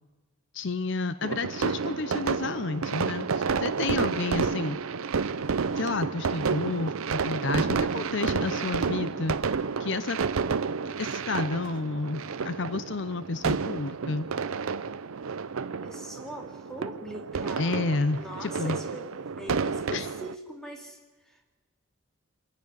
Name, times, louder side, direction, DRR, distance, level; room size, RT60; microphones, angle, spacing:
voice 1, 0.5-4.8 5.7-9.4 9.8-10.2 11.0-14.3 17.6-18.8 19.9-20.1, left 3 dB, 55° left, 13 dB, 0.6 m, -30 dB
sound 1, 1.2-20.3, right 5 dB, 75° right, 0.6 m, -30 dB
voice 2, 4.1-4.5 15.8-17.9 18.2-21.0 21.2-21.6, equal, 5° left, 1 dB, 2.3 m, -42 dB
25.5 x 10.5 x 9.6 m, 1.3 s
head